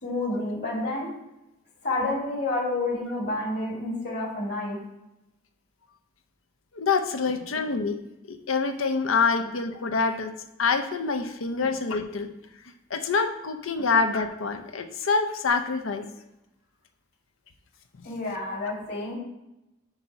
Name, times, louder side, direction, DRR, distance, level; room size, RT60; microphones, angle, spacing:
voice 1, 0.0-1.1 1.8-4.8 11.6-11.7 13.8-13.9 18.0-19.1, left 2 dB, 55° left, -4 dB, 2.5 m, -29 dB
voice 2, 6.7-8.0 8.3-10.3 10.6-12.3 12.9-16.0, left 4 dB, 85° left, 7 dB, 0.7 m, -26 dB
8.0 x 2.8 x 5.7 m, 0.90 s
head